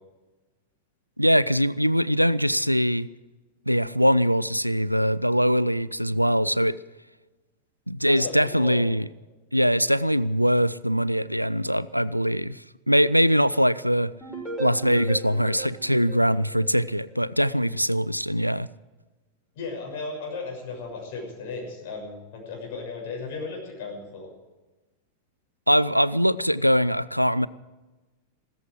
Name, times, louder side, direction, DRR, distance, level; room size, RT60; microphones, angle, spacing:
voice 1, 1.2-3.1 3.7-6.8 7.9-9.0 9.5-14.1 14.6-18.7 25.7-27.5, equal, 90° right, 0.4 m, -22 dB
voice 2, 8.0-8.8 19.5-24.3, left 4 dB, 50° left, 6.4 m, -35 dB
sound 1, 14.2-17.1, right 2 dB, ahead, 5.0 m, -37 dB
16.0 x 14.0 x 4.7 m
figure-of-eight pair, 90°, 0 cm